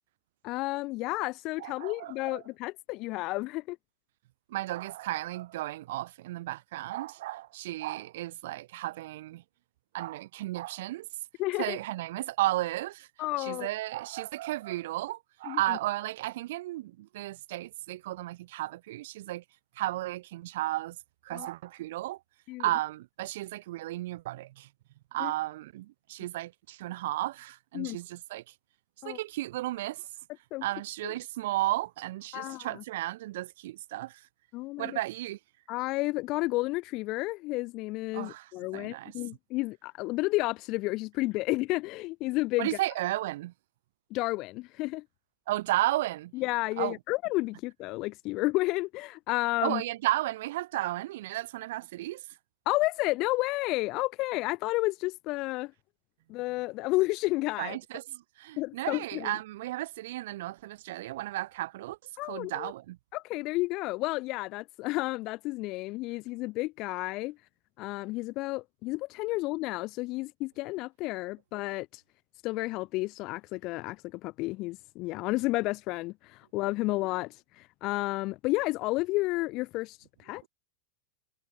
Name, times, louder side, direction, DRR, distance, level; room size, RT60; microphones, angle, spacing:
voice 1, 0.4-3.8 11.4-11.8 13.2-13.7 15.5-15.8 21.3-21.5 22.5-22.6 25.2-25.3 27.7-28.0 29.0-29.2 30.5-30.6 31.0-31.1 32.3-32.8 34.5-34.9 35.7-42.7 44.1-45.0 46.3-49.8 52.6-55.7 56.3-57.8 58.6-59.4 62.2-62.7 63.1-67.4 67.8-72.0 72.4-80.0 80.2-80.4, left 21 dB, 40° left, 3.0 m, -31 dB
voice 2, 1.6-2.4 4.5-9.4 9.9-11.1 11.6-13.1 13.4-19.4 19.8-21.0 21.2-22.2 22.6-24.7 25.1-28.5 29.0-30.1 30.6-34.2 34.8-35.4 38.1-39.1 42.6-43.5 45.5-46.3 46.8-47.0 49.6-52.2 57.6-62.0 62.2-63.0, right 16 dB, 55° right, 2.8 m, -34 dB
figure-of-eight pair, 90°, 0 cm